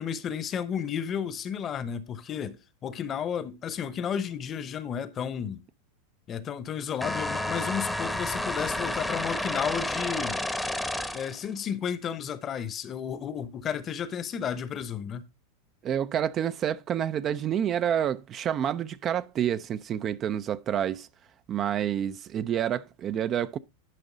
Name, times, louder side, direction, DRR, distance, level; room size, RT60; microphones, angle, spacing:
voice 1, 0.0-5.6 6.3-10.4 11.1-15.3, left 8 dB, 35° left, 0.8 m, -32 dB
sound 1, 7.0-11.4, left 1 dB, 5° left, 0.8 m, -31 dB
voice 2, 15.8-21.1 21.5-23.6, right 9 dB, 35° right, 0.4 m, -28 dB
11.0 x 5.2 x 3.8 m
hypercardioid pair, 100°, 0 cm